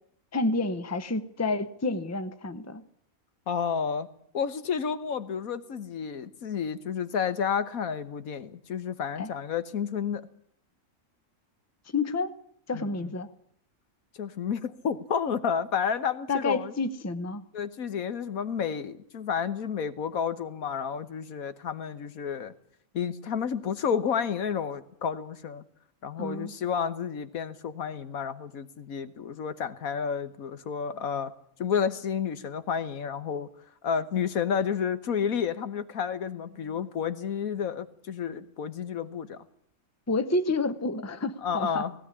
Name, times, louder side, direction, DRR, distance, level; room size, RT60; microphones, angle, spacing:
voice 1, 0.3-2.8 9.2-9.3 11.9-12.3 12.7-13.3 16.3-17.4 26.2-26.5 40.1-41.8, left 3 dB, 15° left, 12 dB, 0.8 m, -29 dB
voice 2, 3.5-4.1 4.3-10.3 12.7-13.1 14.2-16.7 17.5-22.5 22.9-25.6 26.0-31.3 31.6-33.5 33.8-39.4 41.4-41.9, left 7 dB, 80° left, 13 dB, 1.6 m, -31 dB
18.0 x 17.0 x 9.8 m, 0.66 s
omnidirectional pair, 1.5 m